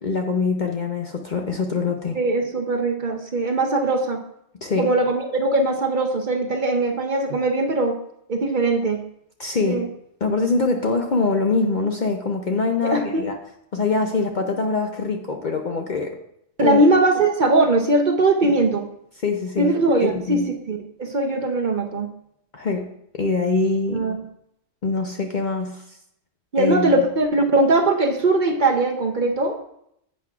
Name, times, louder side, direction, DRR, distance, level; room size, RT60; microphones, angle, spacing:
voice 1, 0.0-2.2 4.6-4.9 9.4-9.9 10.2-13.4 13.7-16.2 16.6-16.8 18.4-18.5 19.2-19.7 20.0-20.5 22.5-22.9 23.1-24.0 24.8-25.8 26.6-26.9, left 3 dB, 50° left, 4 dB, 0.6 m, -24 dB
voice 2, 2.1-4.2 4.8-7.9 8.3-9.0 9.7-9.9 12.8-13.3 16.6-18.8 19.6-22.1 23.9-24.2 26.5-29.6, right 2 dB, 45° right, 3 dB, 0.7 m, -20 dB
10.5 x 8.3 x 2.4 m, 0.76 s
omnidirectional pair, 1.3 m